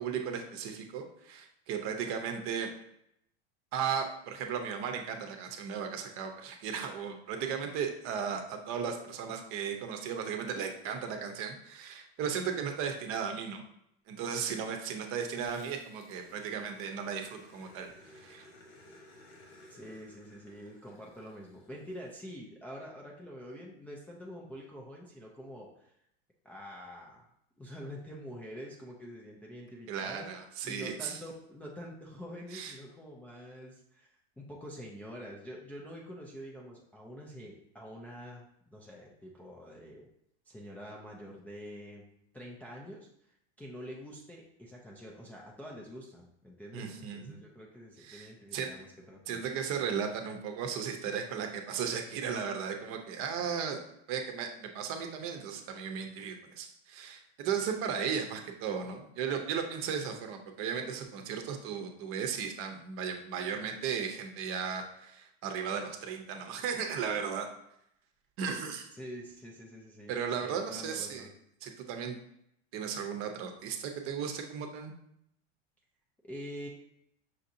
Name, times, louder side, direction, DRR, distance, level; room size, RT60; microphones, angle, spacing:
voice 1, 0.0-2.7 3.7-13.6 14.1-17.9 18.1-18.5 29.9-31.2 32.5-32.7 46.7-47.4 48.0-48.7 49.3-53.8 54.1-67.5 68.4-68.9 70.1-71.3 71.6-72.2 72.7-74.9, right 7 dB, 45° right, 5 dB, 0.7 m, -36 dB
Growling, 15.4-22.1, left 1 dB, 80° left, 1.4 m, -57 dB
voice 2, 19.7-25.9 26.4-27.3 27.6-30.3 30.6-34.1 34.4-40.1 40.5-42.1 42.3-49.4 68.9-70.1 70.4-71.3 76.2-76.7, equal, 5° left, -4 dB, 0.4 m, -46 dB
5.9 x 2.7 x 2.6 m, 0.75 s
supercardioid pair, 130°, 31 cm